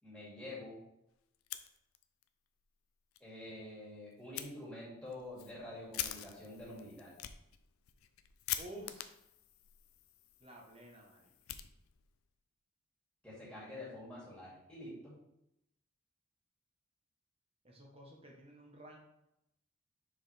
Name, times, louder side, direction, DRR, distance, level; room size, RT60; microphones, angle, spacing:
voice 1, 0.0-0.8 3.2-7.1 13.2-15.1, left 1 dB, 5° left, -8 dB, 2.5 m, -47 dB
Fire, 1.3-2.3 2.6-2.7 3.1-3.2 4.3-4.5 5.1-12.2, left 12 dB, 80° left, 0.5 m, -45 dB
voice 2, 8.6-9.1 10.4-11.3 17.6-19.0, right 1 dB, 25° right, -1 dB, 1.1 m, -52 dB
6.2 x 4.9 x 3.4 m, 0.83 s
head